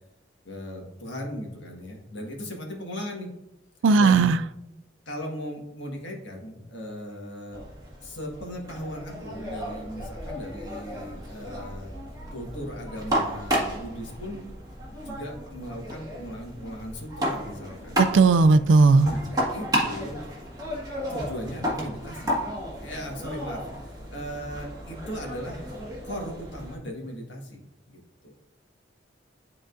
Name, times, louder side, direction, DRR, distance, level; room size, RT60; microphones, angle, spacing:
voice 1, 0.4-3.3 4.0-4.3 5.0-7.6 8.0-11.9 12.3-14.4 15.0-18.0 19.0-20.2 21.1-22.4 22.8-25.7 26.0-27.6 27.9-28.3, equal, 70° left, 1.6 m, -37 dB
voice 2, 3.8-4.4 18.0-19.1, right 4 dB, 90° right, 0.4 m, -17 dB
sound 1, 7.5-26.8, equal, 20° right, 1.7 m, -33 dB
11.0 x 3.8 x 2.6 m
head